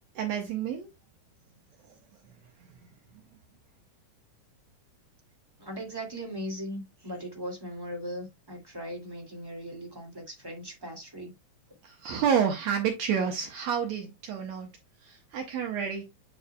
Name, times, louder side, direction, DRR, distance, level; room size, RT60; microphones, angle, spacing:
voice 1, 0.2-0.9 11.8-14.7 15.0-16.0, right 7 dB, 70° right, 2.1 m, -29 dB
voice 2, 5.6-11.3, equal, 10° right, 2.0 m, -38 dB
8.1 x 5.3 x 2.3 m
omnidirectional pair, 3.3 m